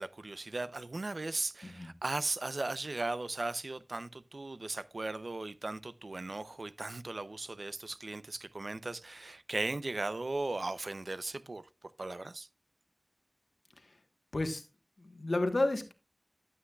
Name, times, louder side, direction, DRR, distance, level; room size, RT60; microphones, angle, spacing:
voice 1, 0.0-11.6 12.0-12.5, right 2 dB, 85° right, 0.5 m, -37 dB
voice 2, 14.3-14.6 15.0-15.9, left 2 dB, 75° left, 1.2 m, -32 dB
13.0 x 8.3 x 2.3 m
wide cardioid pair, 40°, 0 cm